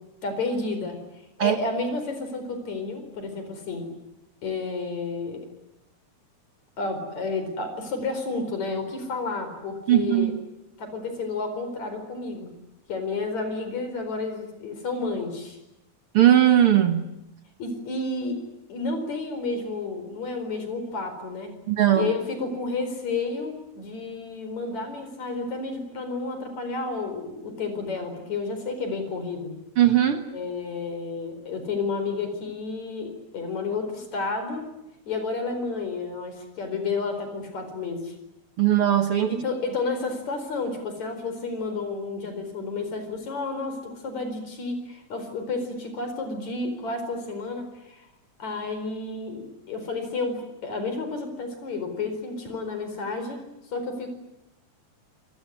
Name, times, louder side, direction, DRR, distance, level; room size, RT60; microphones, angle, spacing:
voice 1, 0.2-1.0 1.4-3.9 4.4-5.4 6.8-10.3 10.8-12.5 12.9-15.6 17.6-18.4 18.7-21.5 22.0-29.5 30.3-34.6 35.1-38.1 39.3-48.1 48.4-53.4 53.7-54.1, left 3 dB, 65° left, 8 dB, 5.8 m, -31 dB
voice 2, 9.9-10.4 16.1-17.1 21.7-22.1 29.8-30.2 38.6-39.4, right 11 dB, 55° right, 7 dB, 1.9 m, -19 dB
28.0 x 19.0 x 9.9 m, 0.90 s
omnidirectional pair, 3.4 m